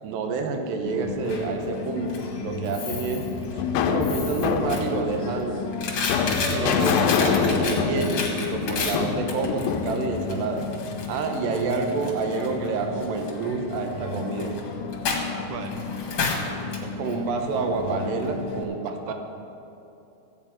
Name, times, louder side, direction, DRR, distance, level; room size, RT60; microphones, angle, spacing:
voice 1, 0.0-3.3 3.8-5.7 6.5-10.7 11.1-14.6 16.8-19.1, right 4 dB, 70° right, 4 dB, 2.6 m, -28 dB
Coin (dropping), 0.9-18.6, left 4 dB, 55° left, 1.8 m, -32 dB
sound 1, 2.9-11.0, left 7 dB, 80° left, 2.2 m, -26 dB
voice 2, 6.4-6.9 15.5-15.8 19.1-19.2, right 8 dB, 85° right, 6 dB, 2.7 m, -36 dB
14.5 x 5.5 x 8.7 m, 2.8 s
omnidirectional pair, 4.7 m